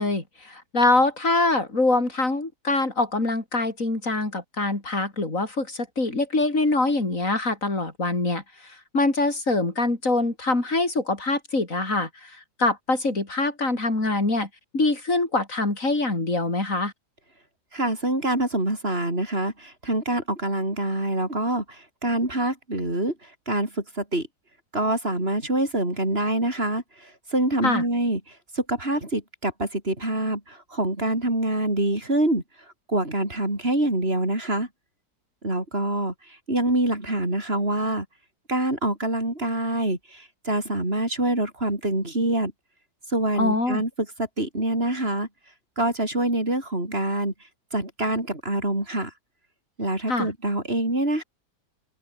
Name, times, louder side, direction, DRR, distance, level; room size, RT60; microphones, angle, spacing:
voice 1, 0.0-14.5 14.7-16.9 27.6-27.8 43.4-43.8 50.1-50.3, left 2 dB, 50° left, 5.2 m, -24 dB
voice 2, 17.7-24.3 24.7-32.4 32.9-34.7 35.4-38.1 38.5-42.5 43.1-43.9 44.2-45.3 45.8-47.3 47.7-49.1 49.8-51.2, right 1 dB, 35° right, 6.4 m, -25 dB
omnidirectional pair, 1.8 m